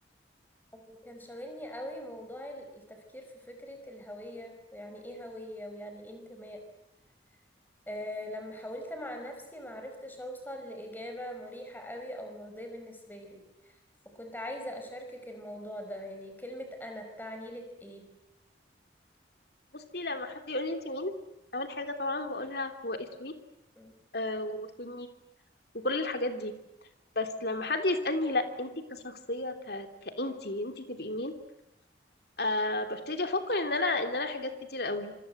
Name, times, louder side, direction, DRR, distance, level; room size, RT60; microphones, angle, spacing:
voice 1, 0.7-6.6 7.9-13.4 14.2-18.1 23.8-23.9, equal, 10° left, 4 dB, 5.2 m, -42 dB
voice 2, 19.7-21.1 21.5-23.3 24.1-25.1 25.8-26.5 27.1-31.3 32.4-35.1, left 2 dB, 55° left, 6 dB, 3.2 m, -32 dB
27.0 x 25.0 x 8.0 m, 0.89 s
head